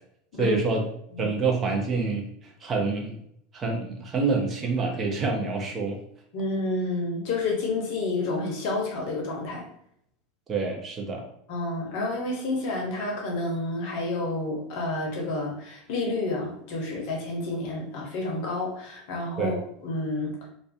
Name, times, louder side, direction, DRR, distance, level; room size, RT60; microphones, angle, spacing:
voice 1, 0.4-0.8 1.2-3.2 3.5-6.0 10.5-11.3 19.4-19.6, right 3 dB, 30° right, 1 dB, 0.6 m, -27 dB
voice 2, 6.3-9.7 11.5-20.3, left 2 dB, 55° left, 0 dB, 0.7 m, -29 dB
2.4 x 2.3 x 2.3 m, 0.70 s
figure-of-eight pair, 80°, 0 cm